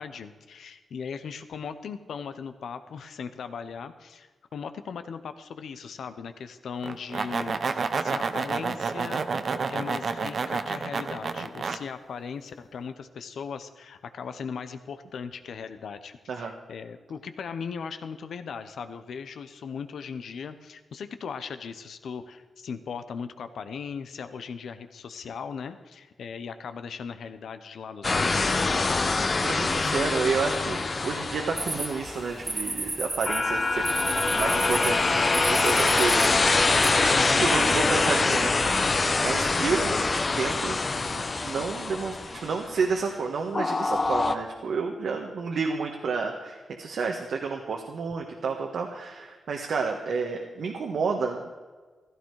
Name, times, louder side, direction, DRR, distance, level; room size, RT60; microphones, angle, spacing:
voice 1, 0.0-9.2 9.7-28.5 37.1-37.5, left 6 dB, 80° left, 10 dB, 1.0 m, -38 dB
sound 1, 6.8-11.8, right 4 dB, 50° right, 0.9 m, -29 dB
sound 2, 28.0-32.5 33.2-42.9 43.5-44.3, left 3 dB, 35° left, 0.9 m, -25 dB
voice 2, 29.4-34.1 34.3-36.6 37.2-40.0 40.4-51.5, right 5 dB, 75° right, 2 dB, 1.5 m, -30 dB
sound 3, 31.6-36.9, right 2 dB, 20° right, 1.1 m, -33 dB
15.5 x 13.5 x 4.8 m, 1.4 s
wide cardioid pair, 110°, 0 cm